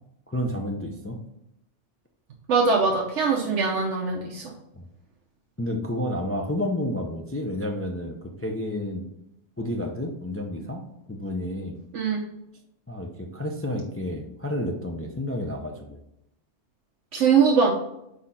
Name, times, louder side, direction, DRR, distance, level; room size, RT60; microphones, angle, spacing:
voice 1, 0.3-1.2 4.7-4.9 5.6-9.1 9.6-10.8 11.1-11.8 12.9-16.0, left 1 dB, 20° left, 2 dB, 0.4 m, -30 dB
voice 2, 2.5-4.5 11.9-12.2 17.1-17.7, right 5 dB, 75° right, 0 dB, 1.1 m, -22 dB
4.9 x 4.3 x 5.6 m, 0.82 s
omnidirectional pair, 1.2 m